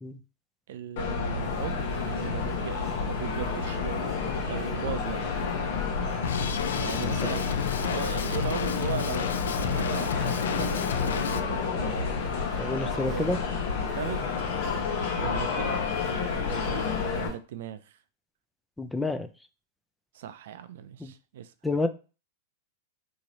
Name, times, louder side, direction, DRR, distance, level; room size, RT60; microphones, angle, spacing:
voice 1, 0.7-4.2 4.5-5.3 6.8-11.7 12.7-13.4 13.8-14.3 15.2-15.8 16.3-18.0 20.1-21.5, right 9 dB, 70° right, 0.4 m, -38 dB
sound 1, 1.0-17.3, left 5 dB, 65° left, 0.9 m, -30 dB
sound 2, 1.4-17.4, right 1 dB, 15° right, 1.4 m, -47 dB
Drum kit, 6.2-11.4, left 8 dB, 85° left, 0.3 m, -31 dB
voice 2, 12.6-13.4 18.8-19.3 21.0-21.1 21.6-21.9, left 2 dB, 5° left, 0.4 m, -28 dB
3.0 x 2.7 x 4.0 m
hypercardioid pair, 120°, 0 cm